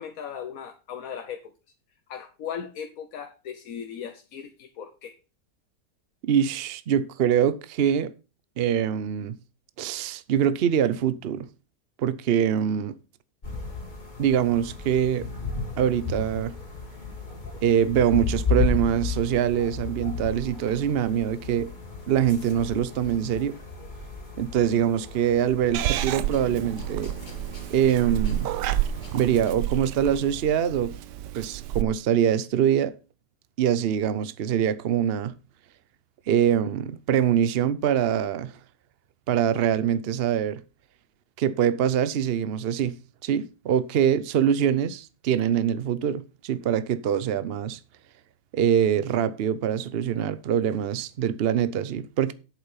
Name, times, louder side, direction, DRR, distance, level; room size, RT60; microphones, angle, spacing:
voice 1, 0.0-1.4 2.1-5.2, left 8 dB, 60° left, 1.3 m, -37 dB
voice 2, 6.2-8.1 8.6-9.4 9.8-11.5 12.0-12.9 14.2-15.3 15.8-16.5 17.6-21.7 22.1-23.5 24.4-27.1 27.7-28.5 29.1-30.9 31.3-32.9 33.6-35.3 36.3-38.6 39.3-40.6 41.4-43.0 43.2-47.8 48.5-52.3, right 9 dB, 70° right, 0.5 m, -24 dB
sound 1, 13.4-29.5, left 4 dB, 25° left, 2.4 m, -34 dB
Purr / Meow, 25.7-31.8, right 12 dB, 85° right, 1.3 m, -30 dB
8.4 x 7.4 x 5.6 m
omnidirectional pair, 1.8 m